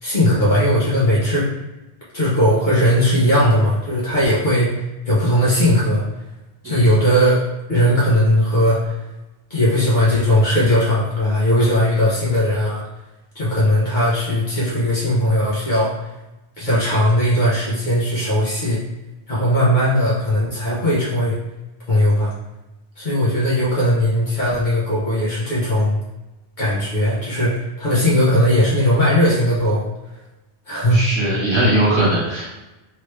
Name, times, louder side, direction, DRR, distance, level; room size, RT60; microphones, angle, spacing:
voice 1, 0.0-1.5 2.1-4.7 5.1-6.0 6.6-8.9 9.5-12.8 13.3-16.1 16.6-18.8 19.3-21.4 21.9-22.3 23.0-26.0 26.6-29.9 30.7-31.0, equal, 45° left, -8 dB, 1.0 m, -18 dB
voice 2, 6.6-7.0 30.9-32.6, right 1 dB, 25° right, -9 dB, 1.3 m, -20 dB
3.2 x 2.9 x 3.2 m, 1.0 s
omnidirectional pair, 1.2 m